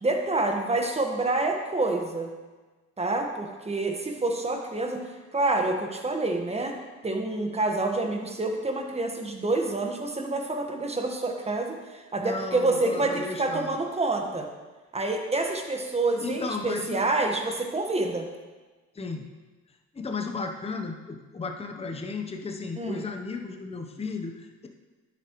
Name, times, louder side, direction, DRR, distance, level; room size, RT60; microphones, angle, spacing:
voice 1, 0.0-2.3 3.0-5.0 5.3-6.7 7.0-14.5 14.9-18.3 22.7-23.0, right 2 dB, 20° right, 3 dB, 1.3 m, -27 dB
voice 2, 12.2-13.7 16.2-17.0 18.9-19.3 19.9-24.7, left 4 dB, 20° left, 4 dB, 0.8 m, -34 dB
10.0 x 8.4 x 3.1 m, 1.3 s
cardioid pair, 90°, 30 cm